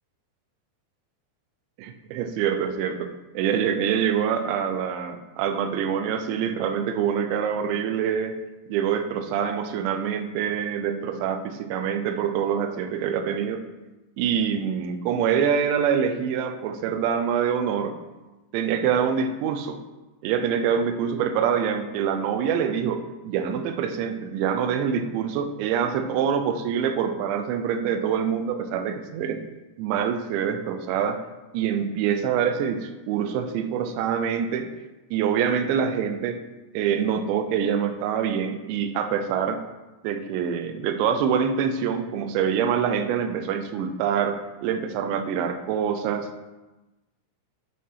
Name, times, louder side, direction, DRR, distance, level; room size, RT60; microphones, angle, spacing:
voice 1, 1.8-8.4 8.7-13.6 14.2-17.9 18.5-19.8 20.2-29.4 29.8-31.2 31.5-34.7 35.1-36.4 36.7-39.6 40.0-46.3, right 7 dB, 85° right, 8 dB, 2.9 m, -25 dB
8.6 x 3.7 x 5.5 m, 1.1 s
omnidirectional pair, 5.1 m